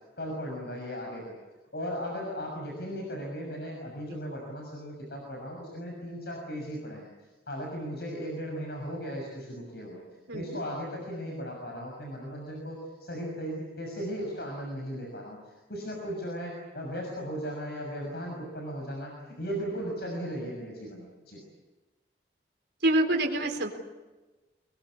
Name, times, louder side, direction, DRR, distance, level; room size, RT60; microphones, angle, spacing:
voice 1, 0.2-1.3 1.7-7.1 7.5-10.0 10.3-21.4, equal, 65° left, 0 dB, 6.5 m, -37 dB
voice 2, 22.8-23.7, right 1 dB, 85° right, 2 dB, 4.0 m, -25 dB
26.0 x 22.5 x 8.4 m, 1.2 s
head